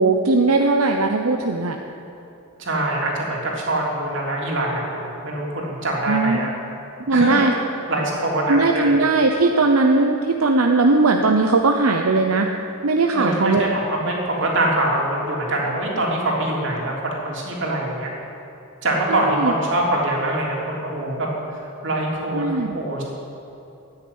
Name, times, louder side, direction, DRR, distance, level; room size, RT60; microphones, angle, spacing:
voice 1, 0.0-1.8 6.1-6.5 7.1-7.5 8.4-12.5 12.8-13.8 19.1-19.5 22.3-22.8, right 3 dB, 85° right, 4 dB, 0.8 m, -19 dB
voice 2, 2.6-6.5 7.1-7.5 7.9-9.1 13.1-18.1 18.8-22.4 22.7-23.0, right 1 dB, 60° right, -2 dB, 3.4 m, -24 dB
14.0 x 9.8 x 9.5 m, 2.9 s
head